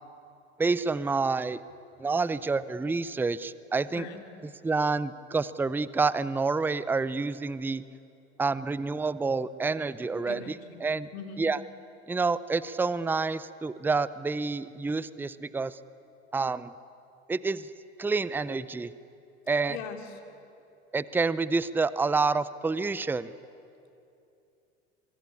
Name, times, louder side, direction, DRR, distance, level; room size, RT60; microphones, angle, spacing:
voice 1, 0.6-1.6 2.0-4.0 4.6-7.8 8.4-10.4 10.8-11.1 11.4-11.6 12.1-15.8 16.3-16.7 17.3-17.7 18.0-18.9 19.5-19.8 20.9-23.3, right 4 dB, 5° right, 17 dB, 0.6 m, -28 dB
voice 2, 3.9-4.2 10.2-10.8 11.1-11.5 19.7-20.2, left 6 dB, 65° left, 5 dB, 2.9 m, -41 dB
24.0 x 23.0 x 8.6 m, 2.7 s
hypercardioid pair, 75°, 33 cm